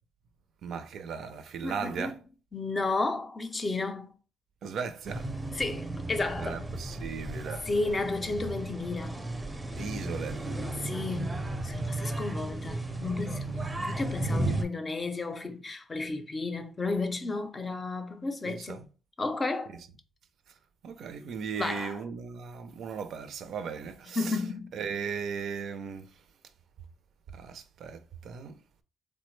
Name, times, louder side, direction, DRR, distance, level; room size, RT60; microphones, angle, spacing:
voice 1, 0.6-2.2 4.6-5.3 6.4-7.7 9.8-10.4 13.7-13.9 14.2-14.6 18.5-18.8 19.7-19.9 20.8-24.4 24.7-26.2 27.3-28.6, right 6 dB, 70° right, 0.5 m, -37 dB
voice 2, 1.6-2.1 2.5-4.1 5.6-6.6 7.7-9.3 10.8-18.8 19.2-19.8 21.5-22.0 24.2-24.7, left 3 dB, 30° left, 0.5 m, -33 dB
sound 1, 5.0-14.6, right 2 dB, 15° right, 0.5 m, -34 dB
3.4 x 2.1 x 3.2 m
cardioid pair, 90°, 0 cm